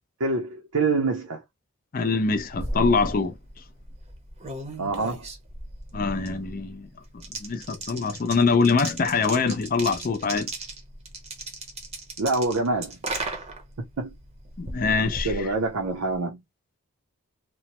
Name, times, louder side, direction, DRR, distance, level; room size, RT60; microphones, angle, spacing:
voice 1, 0.2-1.4 4.8-5.3 12.2-13.0 14.0-14.1 15.2-16.4, right 3 dB, 80° right, 0.6 m, -26 dB
voice 2, 1.9-3.3 5.9-6.9 7.4-10.5 14.6-15.3, left 4 dB, 40° left, 0.4 m, -24 dB
sound 1, 2.1-16.2, right 2 dB, 30° right, 0.7 m, -37 dB
3.0 x 2.1 x 2.9 m
head